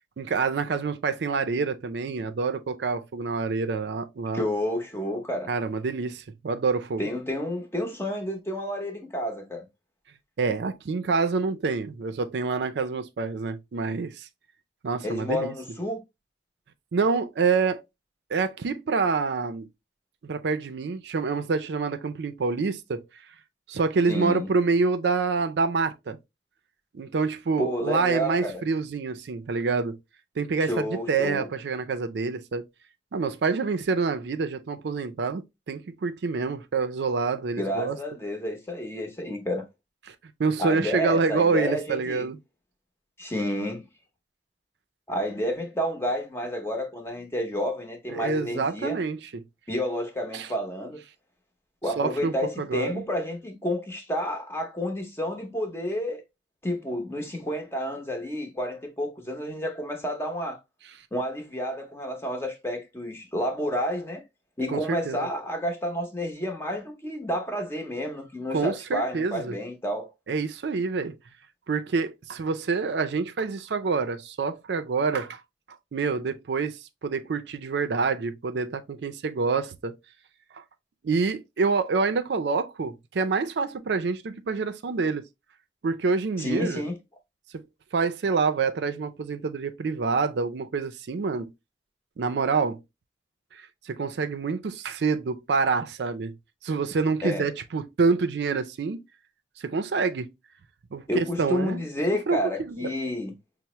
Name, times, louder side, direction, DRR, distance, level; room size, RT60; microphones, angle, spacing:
voice 1, 0.2-4.4 5.5-7.0 10.4-14.3 14.8-15.5 16.9-17.8 18.3-19.7 20.2-23.0 23.7-26.2 26.9-30.0 30.4-32.7 33.1-38.0 40.1-40.2 40.4-42.4 48.1-49.4 50.3-50.5 52.0-53.0 64.7-65.3 68.5-69.6 70.3-71.1 71.7-75.4 75.9-80.0 80.5-80.6 81.0-85.2 85.8-86.8 87.5-87.6 87.9-91.5 92.2-92.8 93.5-96.3 96.6-99.0 99.6-100.3 100.9-101.8 102.3-102.9, right 4 dB, 75° right, 0.4 m, -27 dB
voice 2, 4.3-5.5 7.0-9.7 15.0-16.0 24.1-24.5 27.6-28.6 30.6-31.5 37.6-39.6 40.6-42.3 43.2-43.8 45.1-49.0 49.7-51.0 51.8-56.2 56.6-60.6 61.1-64.2 64.6-70.1 86.4-87.0 97.2-97.5 101.1-103.3, equal, 15° left, 0.7 m, -30 dB
5.5 x 2.0 x 2.9 m
head